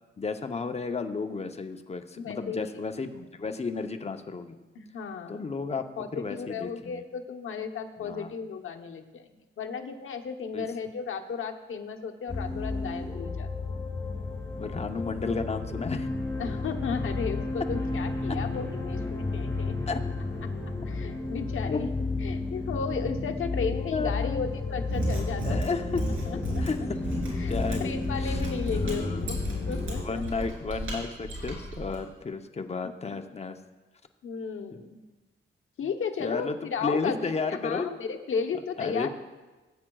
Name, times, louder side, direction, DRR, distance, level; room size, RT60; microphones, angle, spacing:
voice 1, 0.2-4.5 5.3-5.8 6.1-7.0 8.0-8.3 10.5-10.7 14.6-16.1 19.9-20.0 21.6-21.8 23.9-24.5 25.4-26.0 26.3-28.4 28.7-29.3 30.0-33.6 34.7-34.8 36.2-37.9 38.8-39.1, left 4 dB, 30° left, 7 dB, 0.7 m, -33 dB
voice 2, 2.2-2.7 4.7-9.3 9.6-13.5 16.4-19.7 20.9-21.9 22.2-25.6 26.2-26.6 27.4-27.5 27.8-30.4 34.2-35.0 35.8-39.1, left 6 dB, 75° left, 5 dB, 0.9 m, -34 dB
sound 1, 12.3-30.0, left 3 dB, 15° left, 2.2 m, -32 dB
Mechanisms, 24.8-32.0, right 1 dB, 80° right, 3.2 m, -34 dB
18.5 x 8.6 x 2.3 m, 1.2 s
cardioid pair, 100°, 21 cm